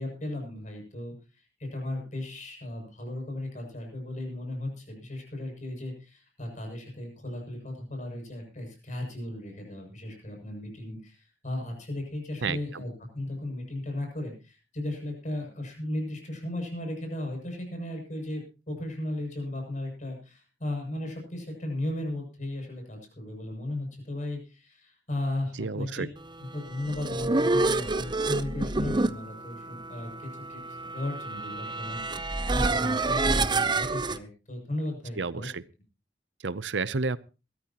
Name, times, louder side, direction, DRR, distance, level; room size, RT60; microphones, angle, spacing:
voice 1, 0.0-26.1 26.5-35.5, left 1 dB, 45° left, 2 dB, 7.2 m, -36 dB
voice 2, 12.4-12.8 25.6-26.1 35.2-35.6 36.4-37.2, right 4 dB, 90° right, 18 dB, 0.7 m, -31 dB
sound 1, 26.7-34.2, right 3 dB, 25° right, 0.7 m, -28 dB
21.5 x 14.0 x 3.0 m, 0.31 s
head